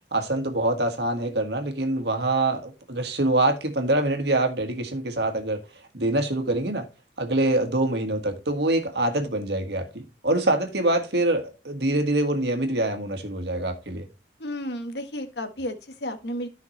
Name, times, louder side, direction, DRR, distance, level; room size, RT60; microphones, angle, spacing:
voice 1, 0.1-5.6 5.9-6.9 7.2-14.1, right 2 dB, 65° right, 1.8 m, -25 dB
voice 2, 14.4-16.5, left 1 dB, 70° left, 1.4 m, -32 dB
13.5 x 5.8 x 3.2 m
head